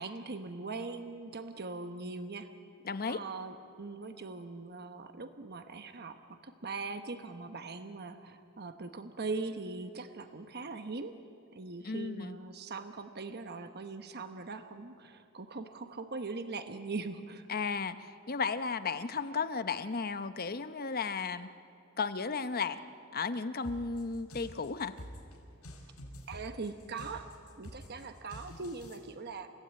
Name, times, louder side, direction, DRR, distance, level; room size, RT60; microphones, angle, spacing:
voice 1, 0.0-2.5 3.1-11.1 11.5-17.5 26.3-27.3 27.6-29.5, right 3 dB, 50° right, 8 dB, 1.0 m, -41 dB
voice 2, 2.8-3.2 11.8-12.4 17.5-21.5 22.0-22.8 23.1-25.0, left 5 dB, 45° left, 11 dB, 0.8 m, -34 dB
sound 1, 23.6-29.0, equal, 85° left, 6.2 m, -48 dB
30.0 x 16.5 x 8.9 m, 2.4 s
head